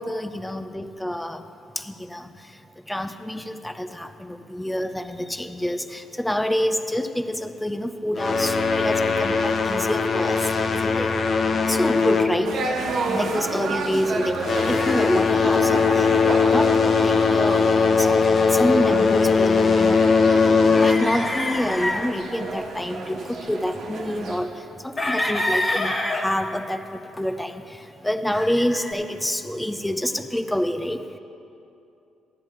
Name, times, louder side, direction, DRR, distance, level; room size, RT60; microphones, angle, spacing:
voice 1, 0.0-1.4 1.8-2.3 2.9-11.1 11.7-12.6 13.0-14.4 14.7-16.1 16.5-16.7 17.0-17.6 18.0-18.2 18.5-20.3 20.7-24.5 24.8-27.8 28.0-31.0, equal, 5° left, 8 dB, 0.6 m, -27 dB
sound 1, 8.1-13.0 13.3-13.7 14.2-21.3, left 5 dB, 50° left, 0.8 m, -20 dB
sound 2, 12.4-24.4, right 3 dB, 75° right, 1.3 m, -31 dB
sound 3, 14.8-15.1 15.6-16.1 17.6-18.7 19.0-20.0 20.6-22.1 23.1-23.7 25.0-26.2 27.2-27.3 28.3-28.9, left 1 dB, 25° left, 1.4 m, -28 dB
15.5 x 11.0 x 3.2 m, 2.7 s
cardioid pair, 90°, 0 cm